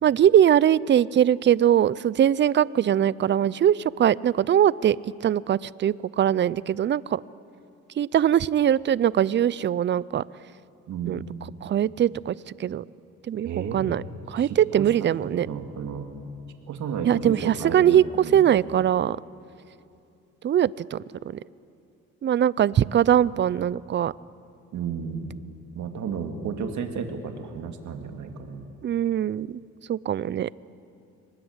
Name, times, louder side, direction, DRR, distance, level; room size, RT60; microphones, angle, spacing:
voice 1, 0.0-5.0 5.2-7.2 8.0-10.2 11.1-11.2 11.6-12.8 13.3-15.5 17.1-18.0 18.3-19.2 20.4-21.4 22.2-24.1 28.8-29.5 29.9-30.5, right 10 dB, 40° right, 21 dB, 0.5 m, -21 dB
voice 2, 10.9-11.2 13.4-13.9 14.4-16.1 16.7-18.4 22.8-23.0 24.7-25.3 25.7-28.7, right 6 dB, 70° right, 5 dB, 2.3 m, -33 dB
24.0 x 20.0 x 8.0 m, 2.6 s
cardioid pair, 90°, 30 cm